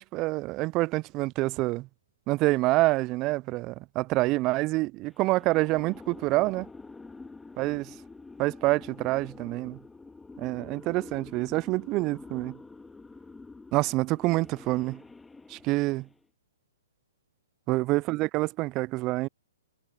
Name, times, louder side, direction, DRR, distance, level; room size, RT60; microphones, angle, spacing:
voice 1, 0.0-1.9 2.3-6.7 7.6-7.9 8.4-9.8 10.4-12.6 13.7-15.0 15.5-16.1 17.7-19.3, right 20 dB, 30° right, 0.4 m, -27 dB
sound 1, 5.1-16.3, left 3 dB, 5° left, 1.8 m, -47 dB
hypercardioid pair, 125°, 0 cm